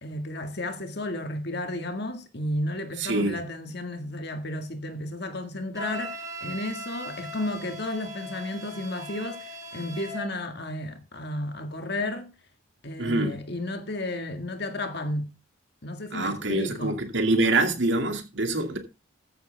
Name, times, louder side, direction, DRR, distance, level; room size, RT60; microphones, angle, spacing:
voice 1, 0.0-12.3 12.8-15.3 15.8-17.0, left 1 dB, 55° left, 1.8 m, -33 dB
voice 2, 3.0-3.4 13.0-13.3 16.1-18.8, right 2 dB, 65° right, 2.3 m, -25 dB
Wind instrument woodwind instrument, 5.7-10.3, equal, 20° right, 3.3 m, -39 dB
14.5 x 9.4 x 3.4 m
head